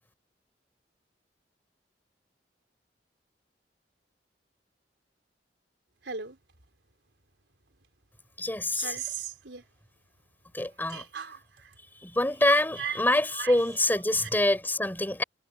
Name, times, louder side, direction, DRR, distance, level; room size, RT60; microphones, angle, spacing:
voice 1, 6.0-6.4 8.7-9.6 10.9-11.7 12.5-13.0 13.3-13.6 14.1-14.3, right 7 dB, 85° right, 3.9 m, -37 dB
voice 2, 8.4-8.9 10.5-11.0 12.0-15.2, left 1 dB, 10° left, 3.7 m, -25 dB
head